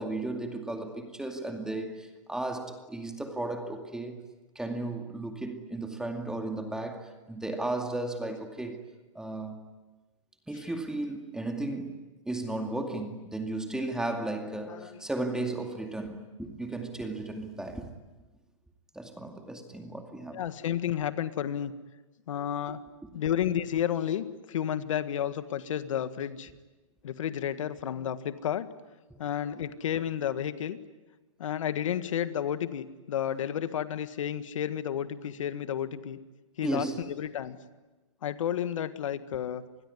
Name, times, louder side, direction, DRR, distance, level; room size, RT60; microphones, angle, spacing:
voice 1, 0.0-4.2 4.6-8.8 9.1-9.6 10.5-12.0 12.3-17.9 18.9-20.4 23.0-23.1 29.5-29.6 36.6-37.1, right 2 dB, 5° right, 4 dB, 2.3 m, -35 dB
voice 2, 20.3-21.7 22.3-22.8 23.1-26.5 27.0-28.7 29.2-30.8 31.4-36.2 36.6-37.6 38.2-39.6, left 10 dB, 70° left, 12 dB, 1.7 m, -31 dB
27.0 x 21.0 x 9.9 m, 1.2 s
hypercardioid pair, 135°, 17 cm